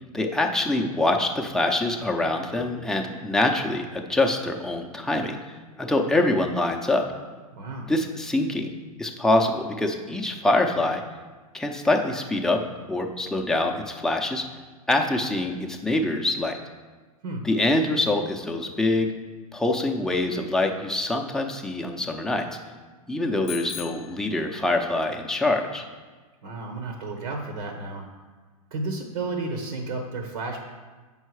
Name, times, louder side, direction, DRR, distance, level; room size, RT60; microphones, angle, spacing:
voice 1, 0.1-5.4 5.8-7.0 7.9-8.7 9.0-11.0 11.5-12.6 12.9-14.5 14.9-16.6 17.4-19.1 19.5-22.5 23.1-25.8, left 2 dB, 5° left, 1 dB, 0.6 m, -24 dB
voice 2, 7.5-7.9 17.2-17.5 26.4-28.1 28.7-30.6, right 3 dB, 70° right, 4 dB, 1.2 m, -32 dB
Bicycle bell, 23.5-25.0, left 14 dB, 45° left, 0.5 m, -40 dB
7.3 x 5.6 x 4.7 m, 1.4 s
hypercardioid pair, 125°, 19 cm